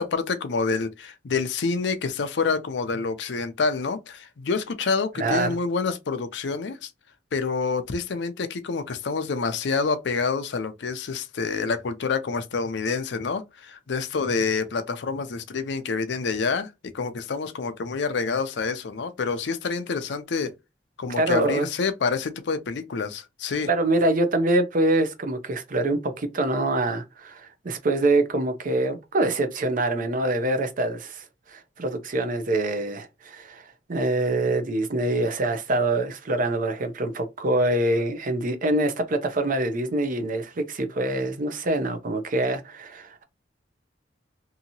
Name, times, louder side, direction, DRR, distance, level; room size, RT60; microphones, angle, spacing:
voice 1, 0.0-6.9 7.3-20.5 21.0-23.7, left 4 dB, 70° left, 0.5 m, -27 dB
voice 2, 5.2-5.5 21.2-21.7 23.7-43.2, right 2 dB, 45° right, 0.6 m, -25 dB
2.8 x 2.7 x 2.7 m
head